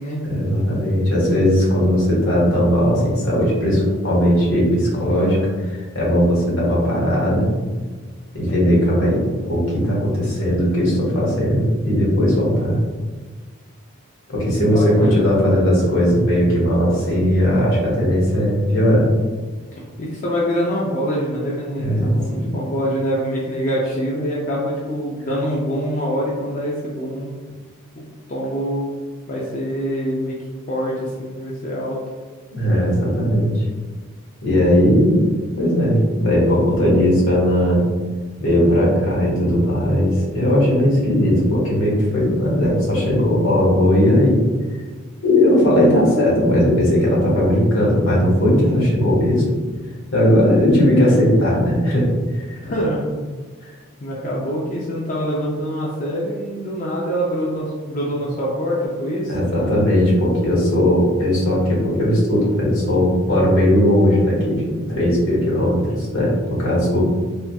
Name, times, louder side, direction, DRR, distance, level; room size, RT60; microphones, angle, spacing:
voice 1, 0.2-5.4 5.6-7.5 8.3-12.8 14.3-19.1 21.8-22.5 32.5-33.6 34.4-35.2 35.6-37.8 38.4-44.4 45.2-49.4 50.1-52.1 52.3-52.6 59.3-67.0, equal, 70° left, -5 dB, 1.2 m, -17 dB
voice 2, 14.7-16.0 19.7-27.3 28.0-28.1 28.3-28.9 29.3-30.4 30.7-32.0 52.6-53.2 54.0-59.4, equal, 35° left, -5 dB, 0.4 m, -25 dB
3.4 x 2.7 x 2.2 m, 1.4 s
head